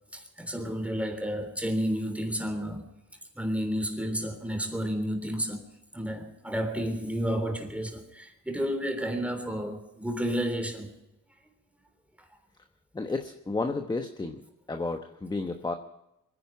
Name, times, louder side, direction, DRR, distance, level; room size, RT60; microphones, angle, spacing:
voice 1, 0.1-2.9 3.4-5.6 5.9-10.9, equal, 5° right, 3.5 m, -31 dB
voice 2, 12.9-14.4 14.7-15.7, left 3 dB, 15° left, 1.1 m, -32 dB
23.0 x 10.5 x 6.0 m
cardioid pair, 90°, 30 cm